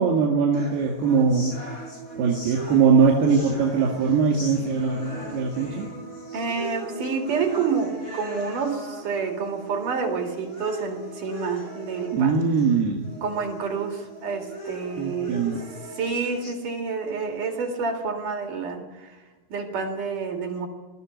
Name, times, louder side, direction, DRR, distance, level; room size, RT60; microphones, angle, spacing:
voice 1, 0.0-1.6 2.2-5.9 12.1-13.1 15.0-15.6, right 5 dB, 80° right, 0 dB, 4.4 m, -21 dB
sound 1, 0.5-16.5, right 1 dB, 15° left, 4.9 m, -38 dB
voice 2, 6.3-12.5 13.2-15.4 16.0-19.1 19.5-20.7, right 5 dB, 55° right, 3 dB, 3.5 m, -28 dB
21.0 x 14.0 x 9.5 m, 1.2 s
omnidirectional pair, 4.6 m